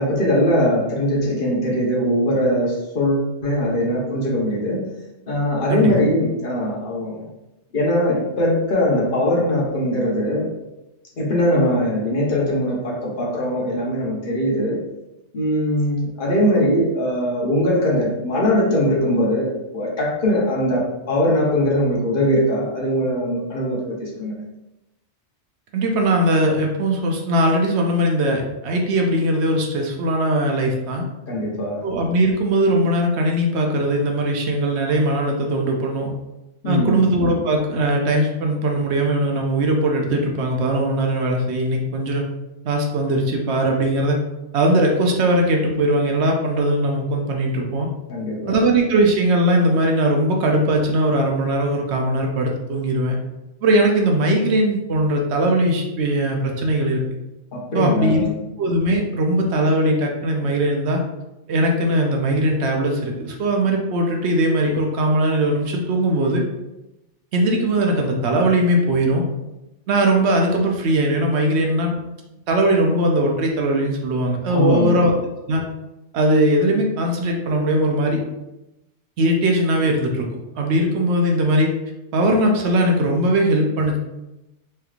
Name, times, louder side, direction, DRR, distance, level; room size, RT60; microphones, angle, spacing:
voice 1, 0.0-4.9 5.3-7.3 7.7-10.5 11.2-14.8 15.3-24.4 31.3-31.8 36.6-37.1 48.1-48.6 57.5-58.3 74.5-75.0, equal, 50° left, -4 dB, 0.9 m, -21 dB
voice 2, 25.7-31.0 31.8-36.1 36.6-42.2 42.6-44.2 44.5-47.9 48.5-53.2 53.6-57.0 57.7-58.3 58.6-61.0 61.5-66.5 67.3-69.2 69.9-71.9 72.5-75.1 75.5-75.6 76.1-78.2 79.2-80.3 80.6-81.7 82.1-84.0, right 1 dB, 70° right, 1 dB, 0.8 m, -20 dB
3.2 x 3.0 x 2.4 m, 0.95 s
omnidirectional pair, 1.2 m